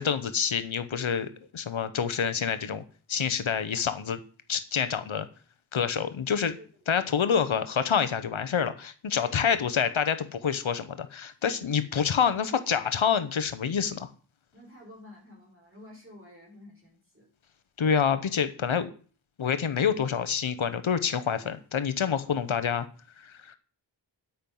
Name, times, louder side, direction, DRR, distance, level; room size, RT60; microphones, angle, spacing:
voice 1, 0.0-2.8 3.1-4.2 4.5-5.3 5.7-6.5 6.9-14.1 17.8-18.9 19.4-22.9 23.2-23.6, left 7 dB, 85° left, 11 dB, 1.0 m, -27 dB
voice 2, 9.1-9.7 11.6-11.8 14.5-17.3, left 1 dB, 25° right, -2 dB, 5.7 m, -51 dB
9.5 x 8.8 x 5.5 m, 0.40 s
wide cardioid pair, 85°, 47 cm